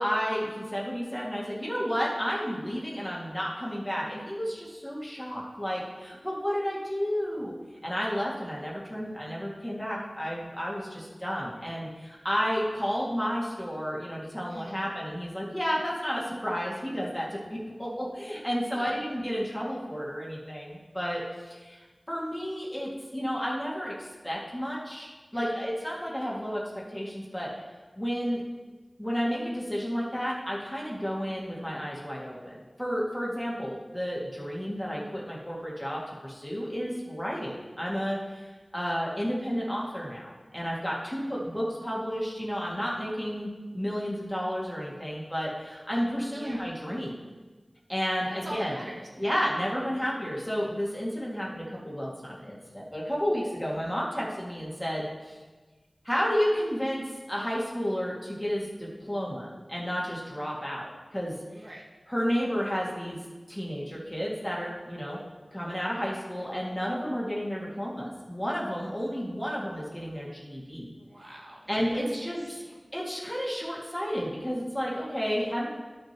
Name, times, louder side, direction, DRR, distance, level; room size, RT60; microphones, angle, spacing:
voice 1, 0.0-7.5 7.8-26.6 26.9-27.5 28.0-28.4 29.0-47.2 47.9-48.8 49.2-55.4 56.0-61.3 62.1-63.2 63.5-65.2 65.5-70.9 71.7-72.4 72.9-75.7, equal, 10° left, -4 dB, 2.1 m, -32 dB
voice 2, 14.5-14.8 18.7-19.0 25.3-25.6 46.3-46.6 48.2-49.3 61.5-61.8 71.0-71.6 72.2-72.3 72.6-72.8, right 1 dB, 70° right, -4 dB, 1.8 m, -43 dB
12.5 x 6.4 x 3.0 m, 1.3 s
wide cardioid pair, 50°, 0 cm